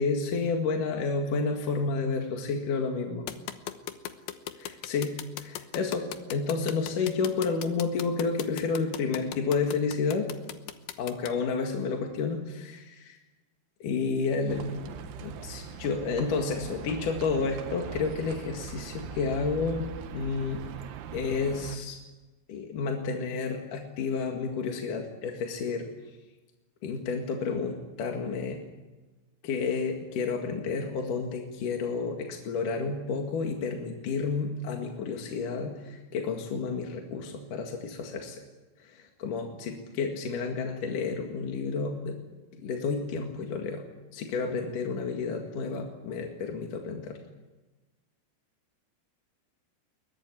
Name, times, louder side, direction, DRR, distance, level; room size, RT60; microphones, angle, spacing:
voice 1, 0.0-3.3 4.6-10.3 11.0-13.2 13.8-20.6 21.1-22.0 22.5-25.9 26.8-28.6 29.4-38.4 38.8-42.2 42.6-43.9 44.1-47.2, left 4 dB, 55° left, 3 dB, 2.8 m, -30 dB
sound 1, 3.3-11.3, left 12 dB, 75° left, 2.3 m, -38 dB
Livestock farm animals working animals, 14.5-21.8, right 7 dB, 80° right, 3.7 m, -41 dB
22.0 x 19.5 x 9.8 m, 1.2 s
omnidirectional pair, 5.7 m